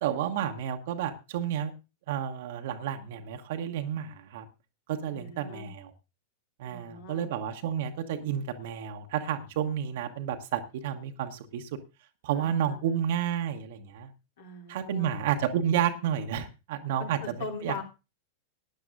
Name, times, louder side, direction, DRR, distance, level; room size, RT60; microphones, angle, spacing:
voice 1, 0.0-1.7 2.1-4.4 4.9-5.9 6.6-11.7 12.2-14.1 14.7-17.2 17.6-17.7, right 9 dB, 55° right, 5 dB, 1.1 m, -31 dB
voice 2, 5.1-5.7 6.6-7.3 12.3-13.0 14.4-15.2 17.0-17.8, left 4 dB, 60° left, 3 dB, 2.8 m, -41 dB
18.5 x 10.0 x 2.6 m, 0.29 s
figure-of-eight pair, 90°, 0 cm